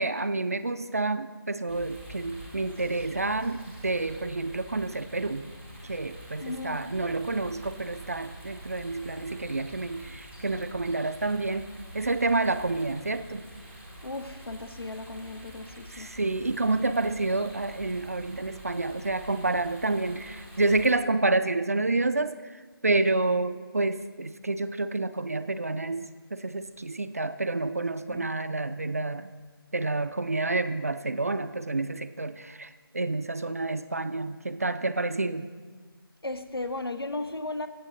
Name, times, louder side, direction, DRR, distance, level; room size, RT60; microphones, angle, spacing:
voice 1, 0.0-5.5 5.9-11.7 11.9-13.4 15.9-22.4 22.8-26.1 26.3-29.3 29.7-35.5, right 2 dB, 40° right, 12 dB, 0.4 m, -29 dB
sound 1, 1.7-20.9, right 1 dB, 5° left, 0.7 m, -46 dB
voice 2, 6.4-6.8 14.0-16.1 28.1-28.3 36.2-37.7, left 2 dB, 80° left, 9 dB, 1.0 m, -35 dB
15.0 x 7.3 x 3.9 m, 1.5 s
figure-of-eight pair, 165°, 13 cm